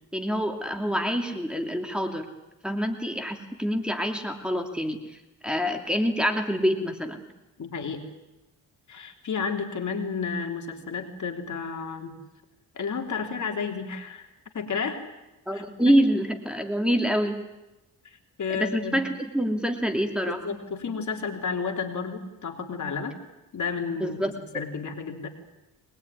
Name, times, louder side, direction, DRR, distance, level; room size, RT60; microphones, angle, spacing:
voice 1, 0.1-2.3 2.6-5.0 5.4-7.2 15.5-17.4 18.5-20.4 24.0-24.3, equal, 5° right, 3 dB, 2.7 m, -26 dB
voice 2, 7.6-8.0 8.9-12.2 12.7-14.3 14.5-15.0 15.5-15.9 18.0-19.0 20.3-23.1 23.5-25.3, left 5 dB, 55° left, 4 dB, 3.4 m, -32 dB
23.0 x 20.5 x 9.9 m, 0.99 s
cardioid pair, 85°, 35 cm